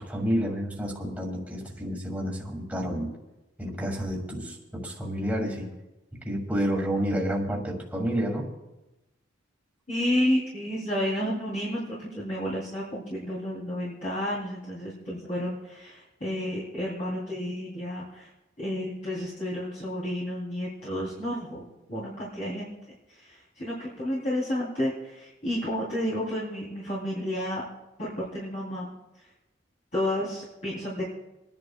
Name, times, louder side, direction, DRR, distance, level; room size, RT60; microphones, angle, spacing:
voice 1, 0.0-3.1 3.6-5.7 6.2-8.5, equal, 10° right, -1 dB, 2.4 m, -30 dB
voice 2, 9.9-18.3 18.6-22.7 23.1-27.6 28.0-29.3 29.9-31.1, equal, 40° left, -8 dB, 3.4 m, -31 dB
28.5 x 10.5 x 2.4 m, 1.0 s
head